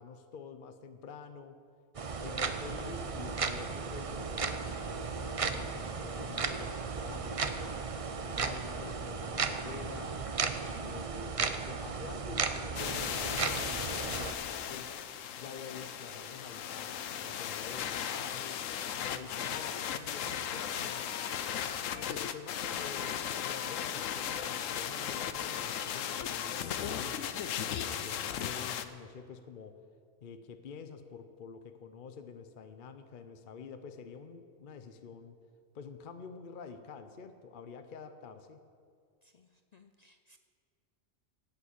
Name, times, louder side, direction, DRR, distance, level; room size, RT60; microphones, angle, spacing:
voice 1, 0.0-1.6 2.2-7.7 8.2-10.2 10.8-14.9 15.4-18.6 19.0-21.0 22.0-27.2 27.8-29.8 30.2-35.4 35.7-38.6, left 6 dB, 50° left, 9 dB, 0.8 m, -48 dB
sound 1, 1.9-14.3, right 5 dB, 40° right, 0.5 m, -35 dB
voice 2, 10.7-11.1 39.2-40.4, left 4 dB, 65° left, 7 dB, 0.4 m, -60 dB
sound 2, 12.8-28.9, left 9 dB, 85° left, 1.1 m, -36 dB
11.5 x 8.9 x 8.3 m, 2.2 s
omnidirectional pair, 1.3 m